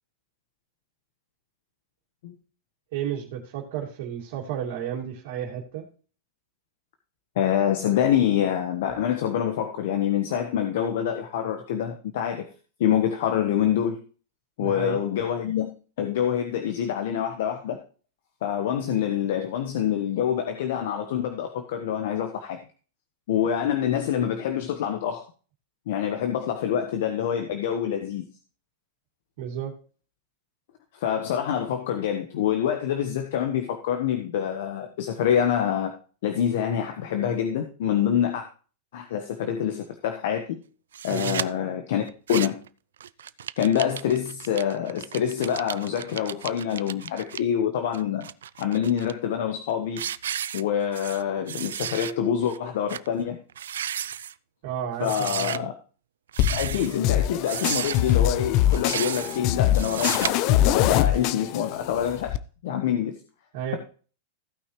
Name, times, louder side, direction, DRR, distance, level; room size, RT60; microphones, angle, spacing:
voice 1, 2.9-5.9 14.6-15.0 29.4-29.7 41.1-41.4 54.6-55.7 63.5-63.8, right 9 dB, 60° right, -3 dB, 2.5 m, -32 dB
voice 2, 7.3-12.5 12.8-14.0 14.6-15.7 16.0-17.8 18.4-22.6 23.3-25.2 25.9-28.2 30.9-35.9 36.2-38.4 38.9-40.6 41.0-42.0 42.3-42.5 43.6-48.2 48.6-50.1 50.5-53.4 55.0-55.7 56.5-62.3 62.6-63.1, left 9 dB, 70° left, 5 dB, 1.3 m, -26 dB
sound 1, 40.9-41.5 42.1-42.7 43.0-47.4 47.9-49.1 49.6-49.7 50.0-51.2 51.5-52.1 52.5-52.6 52.9-53.1 53.5-54.3 55.0-55.6 56.3-57.0 57.4-58.1 58.7-59.4 59.7-60.3, right 9 dB, 85° right, 0.4 m, -33 dB
sound 2, 56.4-62.4, left 12 dB, 50° left, 0.6 m, -23 dB
15.5 x 5.8 x 3.2 m, 0.38 s
hypercardioid pair, 125°, 0 cm